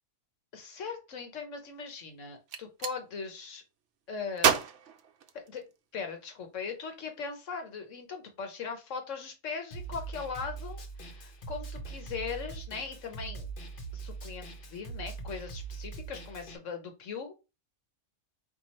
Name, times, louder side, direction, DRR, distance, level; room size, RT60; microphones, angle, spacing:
voice 1, 0.5-3.6 4.1-4.7 5.3-5.6 5.9-13.5 13.9-17.3, left 5 dB, 80° left, 5 dB, 1.4 m, -39 dB
Gunshot gunfire, 2.3-3.0 4.4-5.9, right 7 dB, 70° right, 0.9 m, -29 dB
Snare drum, 9.7-16.6, right 4 dB, 50° left, 0.9 m, -42 dB
4.6 x 2.5 x 4.3 m, 0.27 s
omnidirectional pair, 1.3 m